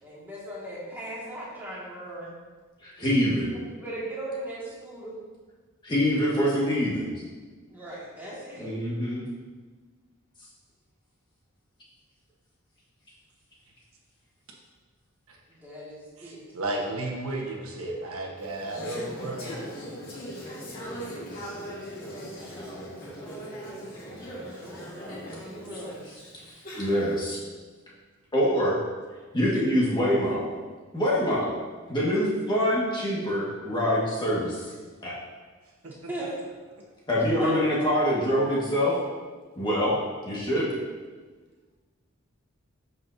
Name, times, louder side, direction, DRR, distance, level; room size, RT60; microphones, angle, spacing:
voice 1, 0.0-2.3 3.7-5.2 7.7-8.7 15.5-16.7 23.8-26.0 36.1-36.4 37.4-37.5, right 1 dB, 10° right, -8 dB, 2.1 m, -39 dB
voice 2, 2.8-3.5 5.8-7.1 8.6-9.3 26.7-27.4 28.3-28.8 29.3-30.5 30.9-31.5 31.9-34.7 35.0-35.2 37.1-39.0 39.6-39.9 40.2-40.7, equal, 20° left, -6 dB, 1.7 m, -25 dB
voice 3, 16.2-19.6 35.8-36.3, right 2 dB, 80° right, -1 dB, 1.3 m, -34 dB
Conversation / Chatter, 18.4-27.3, equal, 40° left, 2.2 m, -39 dB
12.0 x 5.6 x 2.8 m, 1.4 s
head